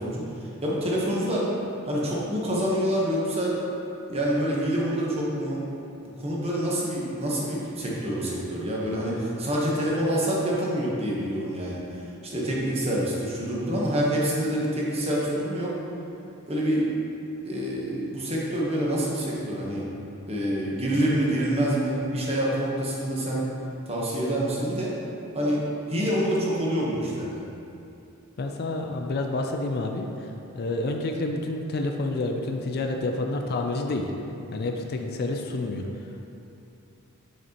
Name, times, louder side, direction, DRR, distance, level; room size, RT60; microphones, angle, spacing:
voice 1, 0.0-1.5 1.8-3.6 4.1-5.7 6.0-15.7 16.5-16.9 17.4-19.9 20.3-23.4 23.9-24.9 25.3-27.4, equal, 30° right, -5 dB, 1.1 m, -27 dB
voice 2, 28.4-34.1 34.5-35.9, left 2 dB, 45° left, 3 dB, 0.4 m, -29 dB
6.5 x 6.2 x 3.0 m, 2.8 s
head